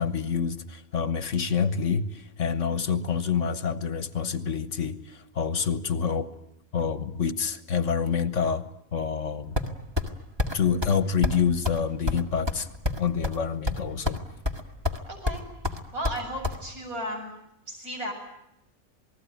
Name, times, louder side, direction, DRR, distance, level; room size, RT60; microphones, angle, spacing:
voice 1, 0.0-6.3 6.7-8.6 8.9-9.6 10.5-12.7 13.0-14.2, left 6 dB, 55° left, 13 dB, 1.4 m, -27 dB
sound 1, 9.6-10.1 10.4-10.5 10.8-11.0 11.2-11.4 11.6-11.8 12.1-13.4 13.7-14.2 14.4-15.0 15.3-16.6, left 2 dB, 15° right, 1.9 m, -27 dB
voice 2, 15.1-15.4 15.9-17.3 17.7-18.1, equal, 75° right, 2 dB, 7.9 m, -34 dB
28.0 x 19.5 x 9.2 m, 0.83 s
omnidirectional pair, 1.5 m